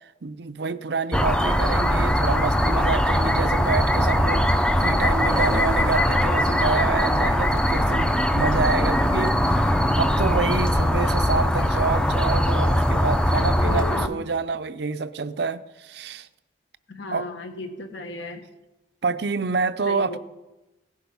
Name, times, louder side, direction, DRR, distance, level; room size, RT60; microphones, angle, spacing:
voice 1, 0.2-16.3 17.1-17.3 19.0-20.2, right 4 dB, 60° right, 0.5 m, -28 dB
sound 1, 1.1-14.1, equal, 5° left, 0.5 m, -21 dB
voice 2, 13.3-14.2 16.9-18.4 19.9-20.2, left 2 dB, 70° left, 1.6 m, -34 dB
17.0 x 10.5 x 5.5 m
head